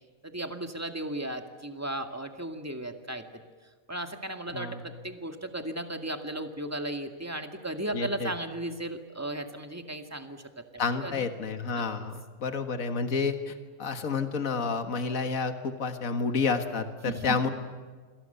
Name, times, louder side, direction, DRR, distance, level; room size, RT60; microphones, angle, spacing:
voice 1, 0.2-3.4 3.9-11.3 11.8-11.9 17.1-17.4, right 1 dB, 10° right, 5 dB, 2.0 m, -36 dB
voice 2, 7.9-8.3 10.8-13.5 13.8-17.5, left 4 dB, 70° left, 7 dB, 2.0 m, -30 dB
27.0 x 26.5 x 6.9 m, 1.5 s
omnidirectional pair, 1.5 m